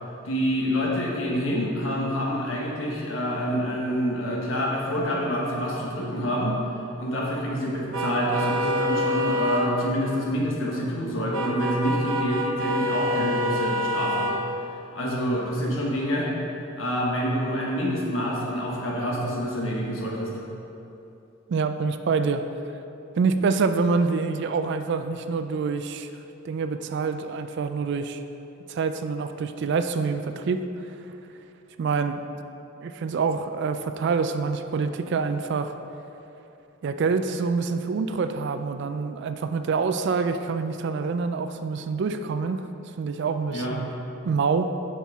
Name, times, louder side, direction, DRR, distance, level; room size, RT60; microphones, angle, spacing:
voice 1, 0.2-6.5 7.0-14.3 14.9-16.3 16.8-20.3 43.5-43.7, equal, 70° left, -3 dB, 1.3 m, -27 dB
sound 1, 7.9-9.6 11.3-14.3, equal, 75° right, 0.8 m, -26 dB
voice 2, 21.5-22.5 23.2-26.1 26.4-28.2 28.7-30.7 31.8-32.2 32.8-35.7 36.8-42.6 43.0-43.9 44.2-44.7, right 4 dB, 55° right, 9 dB, 0.3 m, -26 dB
7.1 x 5.8 x 3.6 m, 2.8 s
head